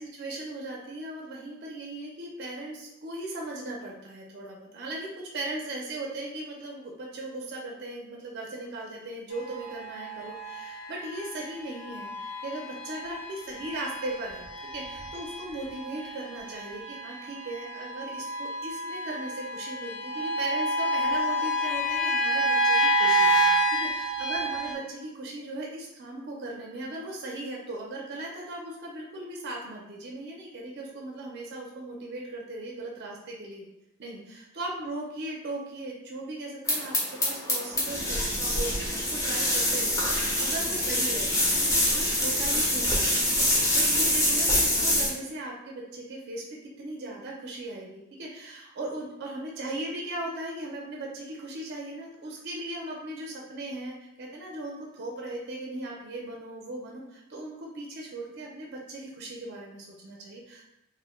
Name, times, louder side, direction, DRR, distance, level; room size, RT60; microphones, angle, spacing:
voice 1, 0.0-14.5 14.7-33.7 34.0-46.4 46.8-60.7, right 2 dB, 50° right, -1 dB, 0.4 m, -38 dB
sound 1, 9.3-24.7, right 1 dB, 80° left, 0.5 m, -29 dB
sound 2, 36.7-45.1, left 1 dB, 15° left, 0.4 m, -25 dB
2.5 x 2.0 x 2.9 m, 0.87 s
head